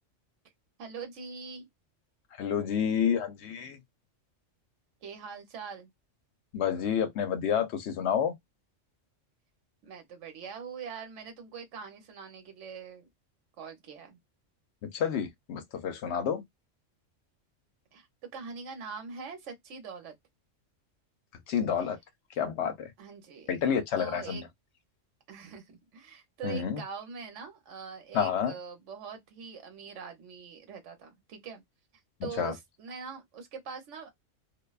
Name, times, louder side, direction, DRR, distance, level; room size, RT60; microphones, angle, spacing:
voice 1, 0.8-1.7 5.0-5.9 9.8-13.1 13.6-14.2 17.9-18.1 18.3-20.1 21.8-21.9 23.0-23.5 24.0-24.5 25.3-31.6 32.2-34.1, right 6 dB, 75° right, 1.2 m, -43 dB
voice 2, 2.4-3.8 6.5-8.3 14.8-16.4 21.5-22.0 22.4-22.9 23.5-24.5 26.4-26.8 28.1-28.5 32.2-32.5, left 8 dB, 65° left, 0.9 m, -29 dB
2.6 x 2.2 x 2.3 m
omnidirectional pair, 1.3 m